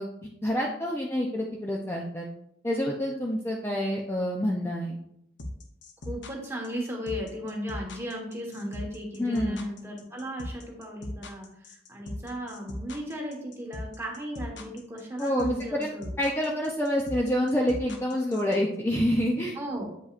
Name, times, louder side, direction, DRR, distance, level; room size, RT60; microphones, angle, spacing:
voice 1, 0.0-2.3 2.6-5.0 9.2-9.6 15.2-15.9 16.2-19.6, equal, 15° left, -2 dB, 0.5 m, -27 dB
sound 1, 5.4-18.6, left 1 dB, 80° left, 0.8 m, -38 dB
voice 2, 6.0-16.1 19.5-19.9, equal, 15° right, -1 dB, 1.3 m, -36 dB
8.2 x 5.2 x 2.5 m, 0.74 s
head